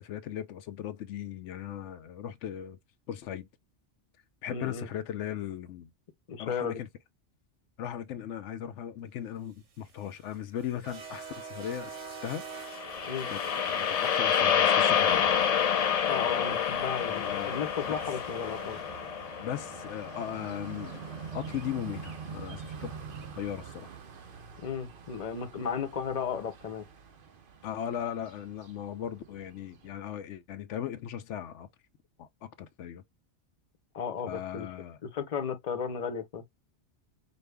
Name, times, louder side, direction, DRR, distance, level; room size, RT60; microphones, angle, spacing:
voice 1, 0.0-2.8 3.1-3.5 4.4-5.9 6.4-6.9 7.8-11.9 12.2-12.4 13.3-13.4 13.7-15.3 17.1-17.5 17.8-17.9 19.4-21.0 21.3-22.9 23.3-23.9 27.6-31.7 32.2-33.0 34.2-35.0, left 10 dB, 90° left, 0.9 m, -38 dB
voice 2, 4.5-4.9 6.3-6.8 13.1-13.3 16.1-18.8 24.6-26.8 33.9-34.7 35.0-36.4, left 7 dB, 40° left, 0.8 m, -34 dB
sound 1, 9.6-21.8, right 5 dB, 80° right, 1.4 m, -46 dB
sound 2, 12.6-21.0, left 8 dB, 65° left, 0.3 m, -28 dB
sound 3, 12.8-29.9, right 6 dB, 55° right, 0.9 m, -47 dB
5.1 x 2.1 x 3.3 m
omnidirectional pair, 1.2 m